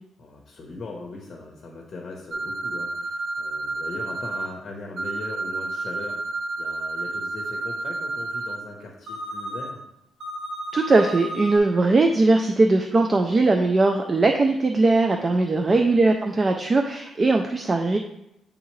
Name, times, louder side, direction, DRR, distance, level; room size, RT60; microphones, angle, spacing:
voice 1, 0.2-9.8 15.7-16.0, left 3 dB, 35° left, 1 dB, 0.9 m, -39 dB
sound 1, 2.3-4.5 5.0-8.6 9.1-9.7 10.2-11.6, right 2 dB, 55° right, 1.0 m, -31 dB
voice 2, 10.7-18.0, right 3 dB, 25° right, 4 dB, 0.4 m, -20 dB
9.2 x 3.7 x 3.1 m, 0.83 s
cardioid pair, 155°, 0 cm